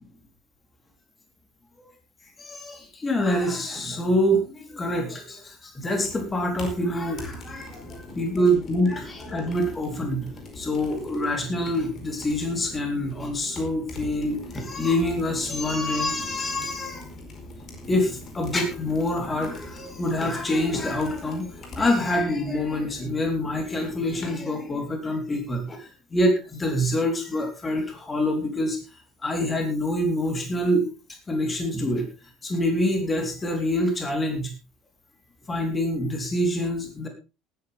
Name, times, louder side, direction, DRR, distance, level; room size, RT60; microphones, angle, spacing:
voice 1, 2.4-17.1 17.9-28.8 29.2-30.9 31.3-32.1 32.4-34.5 35.5-37.1, left 1 dB, 20° left, 4 dB, 3.9 m, -26 dB
sound 1, 6.0-24.4, left 1 dB, 40° left, 4.8 m, -42 dB
19.0 x 9.9 x 3.6 m, 0.30 s
figure-of-eight pair, 65°, 0 cm